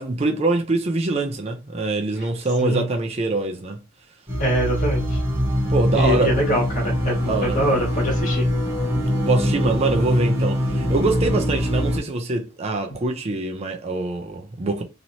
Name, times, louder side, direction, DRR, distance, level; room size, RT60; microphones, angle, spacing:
voice 1, 0.0-3.8 5.7-6.3 7.3-7.6 9.3-14.8, right 2 dB, 30° right, 0.5 m, -24 dB
sound 1, 4.3-12.0, equal, 10° right, 1.1 m, -23 dB
voice 2, 4.4-5.2 5.9-8.4, equal, 40° left, 1.5 m, -23 dB
2.9 x 2.9 x 2.7 m
head